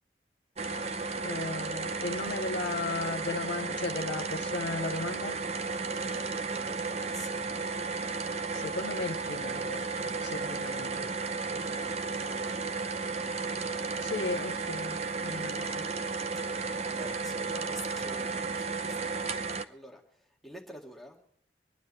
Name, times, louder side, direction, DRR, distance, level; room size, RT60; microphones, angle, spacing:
sound 1, 0.6-19.6, right 4 dB, 35° right, 0.7 m, -34 dB
voice 1, 1.2-5.4 8.5-11.1 14.0-15.9, left 3 dB, 80° left, 0.7 m, -36 dB
voice 2, 5.9-7.4 11.5-12.8 16.8-19.4 19.7-20.0 20.4-21.2, equal, ahead, 2.1 m, -48 dB
25.5 x 9.9 x 4.2 m
head